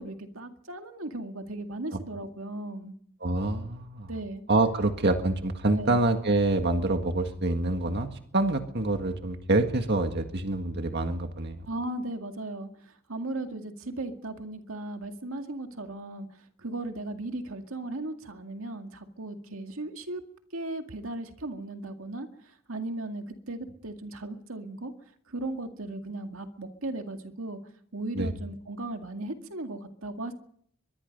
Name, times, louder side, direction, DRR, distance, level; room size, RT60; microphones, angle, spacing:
voice 1, 0.0-2.9 4.1-4.4 5.7-6.0 11.7-16.3 16.6-20.2 20.5-24.9 25.3-27.6 27.9-30.3, right 2 dB, 80° right, 5 dB, 2.1 m, -36 dB
voice 2, 3.2-4.1 4.5-11.6 28.2-28.3, right 2 dB, 55° right, 5 dB, 1.7 m, -26 dB
23.5 x 22.0 x 5.4 m, 0.65 s
head